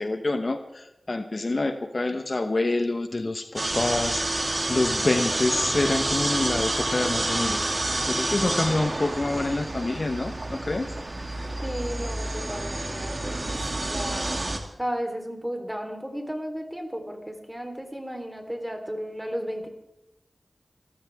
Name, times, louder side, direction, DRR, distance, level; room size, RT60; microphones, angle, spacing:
voice 1, 0.0-10.9, left 2 dB, 55° left, 7 dB, 1.1 m, -27 dB
sound 1, 3.6-14.6, right 1 dB, 40° right, 2.4 m, -28 dB
voice 2, 11.6-14.4 14.8-19.7, equal, 10° right, 4 dB, 3.7 m, -34 dB
27.0 x 14.5 x 3.6 m, 0.88 s
cardioid pair, 45°, 0 cm